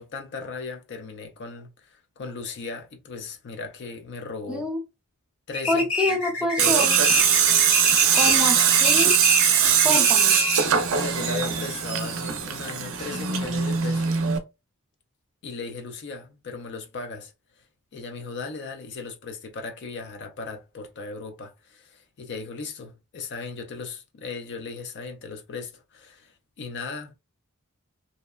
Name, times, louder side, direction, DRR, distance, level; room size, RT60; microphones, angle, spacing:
voice 1, 0.0-4.7 5.5-6.9 9.7-10.1 10.9-14.2 15.4-17.6 17.9-27.1, left 4 dB, 50° left, 0.4 m, -37 dB
voice 2, 4.5-4.8 5.7-7.0 8.1-9.1 9.8-10.4, left 1 dB, 5° right, 0.6 m, -26 dB
sound 1, 5.5-10.8, left 1 dB, 75° left, 1.2 m, -27 dB
Tools, 6.6-14.4, right 8 dB, 60° right, 0.5 m, -21 dB
2.7 x 2.1 x 2.3 m
head